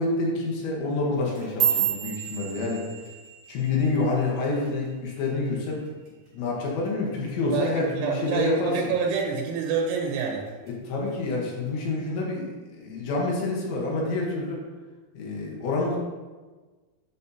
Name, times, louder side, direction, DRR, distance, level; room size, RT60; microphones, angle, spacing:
voice 1, 0.0-2.8 3.5-5.8 6.3-8.8 10.7-14.7 15.1-16.0, left 3 dB, 70° left, -3 dB, 3.1 m, -27 dB
sound 1, 1.2-5.6 5.9-6.3 6.7-7.1 7.5-7.7 8.3-8.7 9.1-9.9 10.3-10.7 11.5-11.6, right 10 dB, 55° right, 3.7 m, -31 dB
voice 2, 7.5-10.5, right 5 dB, 85° right, 0 dB, 3.5 m, -27 dB
8.9 x 5.4 x 2.7 m, 1.3 s
omnidirectional pair, 5.9 m